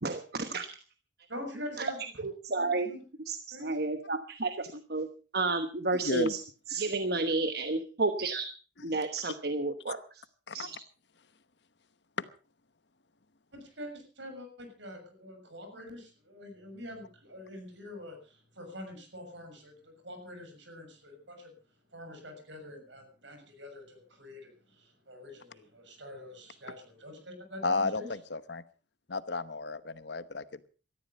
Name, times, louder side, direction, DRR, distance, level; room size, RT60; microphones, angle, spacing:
voice 1, 0.0-0.7 1.8-1.9 2.2-2.9 3.3-5.1 5.3-6.4 6.7-8.5 8.8-10.2 10.5-10.8, right 3 dB, 55° right, 9 dB, 1.2 m, -31 dB
voice 2, 1.3-2.0 2.6-3.0 3.5-3.8 13.5-21.5 21.9-28.1, left 1 dB, 75° right, 5 dB, 6.5 m, -45 dB
voice 3, 6.0-6.3 10.5-10.7 27.6-28.6 29.1-30.7, left 3 dB, 65° left, 14 dB, 1.0 m, -33 dB
18.5 x 13.5 x 5.4 m, 0.38 s
head